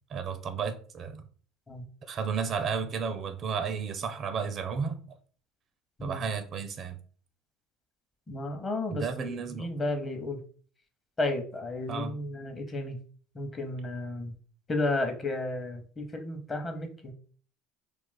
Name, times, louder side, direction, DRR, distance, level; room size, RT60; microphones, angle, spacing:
voice 1, 0.1-1.2 2.0-5.2 6.0-7.0 8.9-9.7 11.9-12.2, right 6 dB, 45° right, 0.4 m, -33 dB
voice 2, 8.3-10.4 11.2-13.0 13.3-14.3 14.7-17.1, left 2 dB, 30° left, 0.8 m, -33 dB
2.4 x 2.3 x 3.9 m
hypercardioid pair, 70°, 0 cm